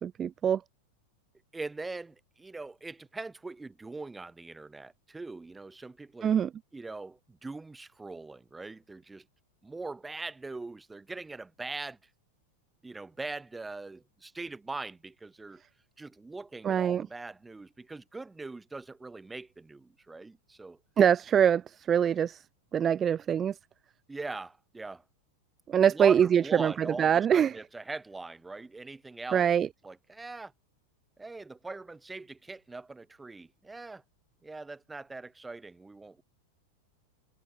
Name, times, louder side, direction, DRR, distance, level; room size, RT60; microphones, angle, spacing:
voice 1, 0.0-0.6 6.2-6.5 16.6-17.1 21.0-22.4 22.7-23.5 25.7-26.7 27.0-27.5 29.3-29.7, right 8 dB, 30° right, 0.6 m, -24 dB
voice 2, 1.5-6.4 6.7-9.2 9.6-12.0 12.8-15.6 16.0-20.8 24.1-25.0 25.9-29.5 29.8-30.5 31.2-34.0 34.4-36.2, right 3 dB, 10° right, 7.0 m, -41 dB
hypercardioid pair, 105°, 0 cm